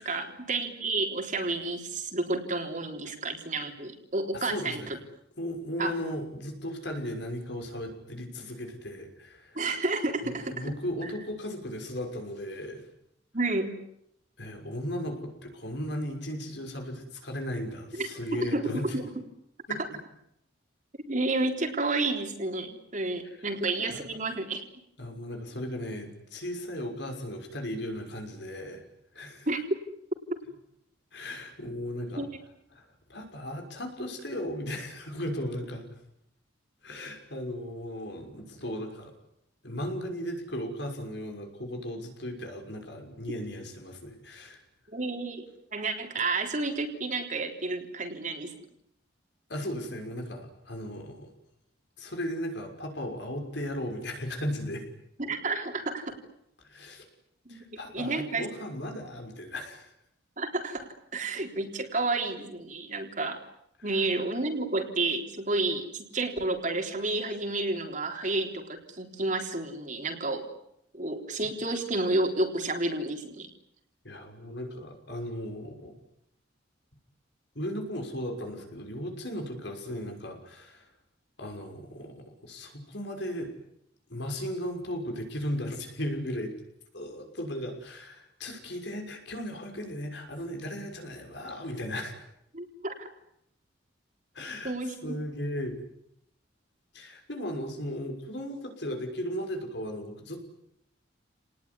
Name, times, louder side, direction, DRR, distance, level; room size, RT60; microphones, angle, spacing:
voice 1, 0.0-5.0 5.8-6.0 9.6-10.7 11.0-11.1 13.3-13.8 17.9-18.1 18.4-19.1 19.8-19.9 21.1-24.6 29.5-29.6 32.2-32.3 44.9-48.5 55.2-56.1 57.5-57.6 57.9-58.5 60.4-63.4 63.8-70.5 70.9-73.5 92.5-93.1 94.6-95.2, right 2 dB, 40° right, 4 dB, 3.7 m, -31 dB
voice 2, 4.3-4.9 5.4-9.6 10.2-12.9 14.4-18.9 19.7-19.8 23.9-24.0 25.0-28.8 29.1-29.5 31.1-32.3 32.7-35.9 36.8-39.1 39.6-44.6 49.5-51.3 52.0-54.8 56.6-57.0 57.5-59.9 63.9-64.0 74.0-75.9 77.5-80.9 81.4-83.5 84.1-86.5 86.9-92.2 94.3-94.7 95.0-95.8 96.9-100.4, equal, 60° left, 3 dB, 6.1 m, -36 dB
29.5 x 19.5 x 9.8 m, 0.79 s
head